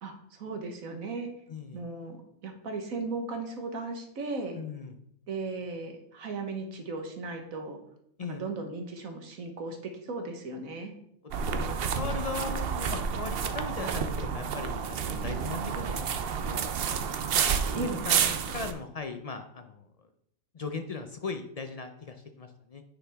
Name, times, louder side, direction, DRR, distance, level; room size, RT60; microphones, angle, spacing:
voice 1, 0.0-1.3 1.7-4.6 5.3-7.8 8.3-10.9 17.7-18.0, right 3 dB, 85° right, 5 dB, 1.6 m, -36 dB
voice 2, 1.5-1.8 4.5-5.0 8.2-8.4 11.5-16.7 17.3-19.9 20.5-22.8, left 4 dB, 50° left, 6 dB, 0.4 m, -38 dB
sound 1, 11.3-18.7, right 7 dB, 55° right, 0.7 m, -30 dB
9.7 x 5.7 x 3.4 m, 0.73 s
omnidirectional pair, 1.4 m